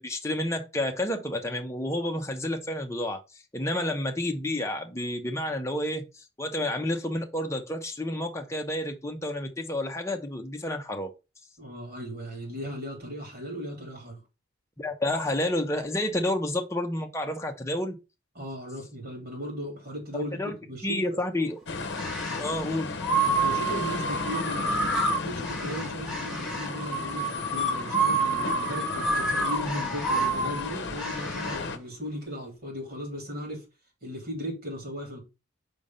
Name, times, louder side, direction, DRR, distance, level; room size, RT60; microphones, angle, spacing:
voice 1, 0.0-11.1 14.8-18.0 20.3-20.6 20.8-21.6 22.4-22.9, left 1 dB, 15° left, 0.8 m, -30 dB
voice 2, 11.6-14.2 18.4-21.2 23.2-24.8 25.2-33.6 34.0-35.2, equal, 50° right, 3.5 m, -37 dB
sound 1, 21.7-31.8, left 3 dB, 55° left, 0.9 m, -35 dB
sound 2, 21.9-22.5 23.0-31.6, right 2 dB, ahead, 1.7 m, -28 dB
5.1 x 3.5 x 5.4 m
head